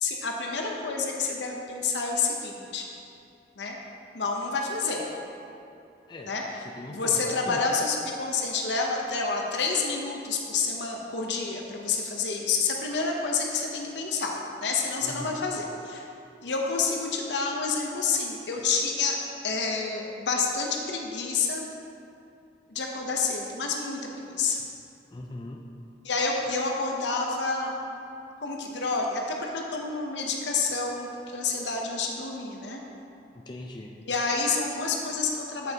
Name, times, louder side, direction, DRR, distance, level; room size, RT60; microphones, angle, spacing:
voice 1, 0.0-2.9 3.6-3.8 4.1-5.1 6.3-6.4 6.9-16.1 16.4-19.2 19.4-21.6 22.7-24.0 24.3-24.6 26.0-27.7 28.4-32.8 34.1-35.7, left 4 dB, 80° left, 0 dB, 0.8 m, -28 dB
voice 2, 6.1-7.6 15.0-15.4 25.1-25.6 33.3-33.9, left 1 dB, 25° left, 1 dB, 0.4 m, -40 dB
7.8 x 7.7 x 2.9 m, 2.6 s
head